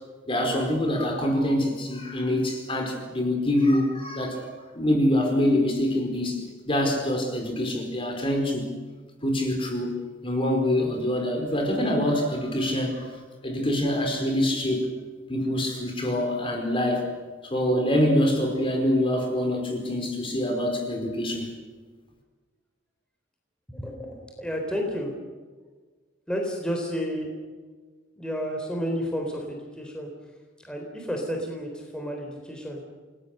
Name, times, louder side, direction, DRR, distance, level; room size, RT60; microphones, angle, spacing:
voice 1, 0.3-8.7 9.2-13.1 13.4-14.9 15.3-17.0 17.4-21.5, left 1 dB, 30° left, 3 dB, 4.7 m, -25 dB
voice 2, 23.7-25.1 26.3-27.3 28.1-30.1 30.6-32.8, equal, 5° left, 1 dB, 4.0 m, -31 dB
29.0 x 20.5 x 6.7 m, 1.4 s
head